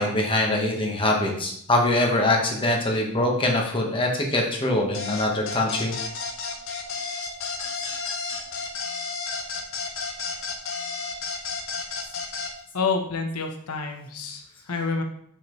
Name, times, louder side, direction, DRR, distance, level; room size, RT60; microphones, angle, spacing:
voice 1, 0.0-5.9, left 1 dB, 25° left, 0 dB, 1.2 m, -23 dB
sound 1, 4.9-12.5, left 4 dB, 60° left, 1.0 m, -32 dB
voice 2, 12.7-15.0, left 4 dB, 85° left, 3 dB, 1.0 m, -28 dB
6.8 x 5.6 x 3.1 m, 0.67 s
head